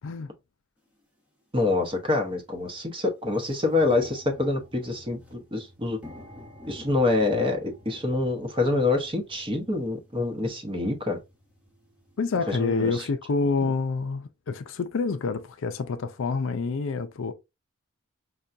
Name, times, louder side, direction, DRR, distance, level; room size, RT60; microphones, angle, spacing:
sound 1, 0.9-1.0 1.8-2.0 2.4-2.5 2.8-12.5, left 1 dB, 5° right, 1.0 m, -50 dB
voice 1, 1.5-6.0 6.7-11.2 12.5-13.0 13.6-13.7, left 2 dB, 25° right, 0.8 m, -26 dB
voice 2, 12.2-17.3, left 4 dB, 60° left, 0.4 m, -27 dB
5.5 x 2.3 x 2.5 m
head